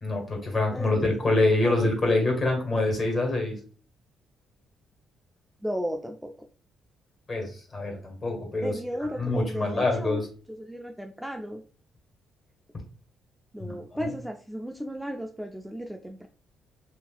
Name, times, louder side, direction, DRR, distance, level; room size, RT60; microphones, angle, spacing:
voice 1, 0.0-3.6 7.3-8.7 9.2-10.3 13.6-14.1, left 2 dB, 35° left, 1 dB, 1.6 m, -26 dB
voice 2, 0.7-1.3 1.6-2.2 5.6-6.5 8.6-10.2 10.6-11.6 13.5-16.3, equal, 5° right, 3 dB, 0.4 m, -35 dB
3.7 x 2.7 x 2.3 m, 0.38 s
cardioid pair, 90°, 0 cm